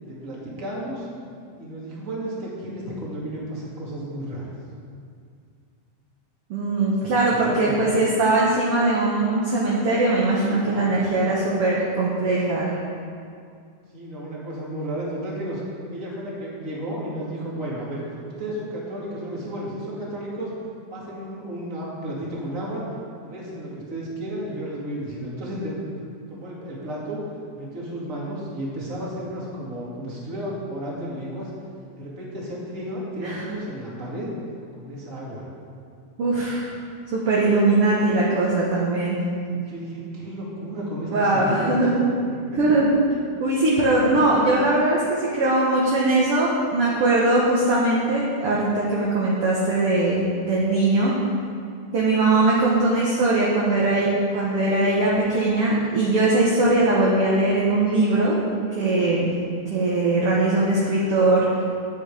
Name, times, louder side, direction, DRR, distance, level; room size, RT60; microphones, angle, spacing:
voice 1, 0.0-1.1 1.5-4.5 7.0-7.9 10.6-10.9 13.9-15.6 15.9-20.5 20.9-22.8 23.2-25.7 26.3-27.2 27.6-31.5 31.9-34.3 34.7-35.5 39.5-41.9 42.5-42.6 44.0-44.2, right 1 dB, 30° right, -6 dB, 2.3 m, -33 dB
voice 2, 6.5-12.8 33.2-33.4 36.2-36.7 37.1-39.2 41.1-42.0 42.6-42.9 43.4-51.1 51.9-58.4 58.8-59.3 59.7-61.6, right 2 dB, 55° right, -5 dB, 1.9 m, -21 dB
10.5 x 8.8 x 5.0 m, 2.3 s
omnidirectional pair, 3.5 m